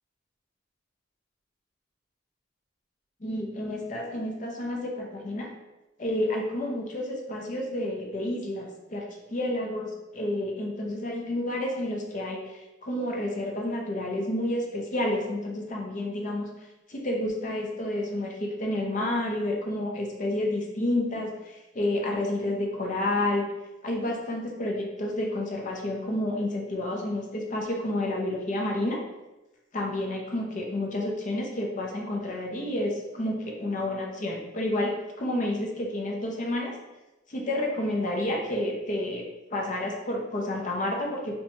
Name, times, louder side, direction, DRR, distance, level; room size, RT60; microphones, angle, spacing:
voice 1, 3.2-5.5 6.0-12.4 12.8-16.5 16.9-23.5 23.8-29.0 29.7-36.7 37.3-41.4, left 1 dB, 40° left, 0 dB, 0.6 m, -30 dB
4.3 x 2.2 x 2.7 m, 1.0 s
head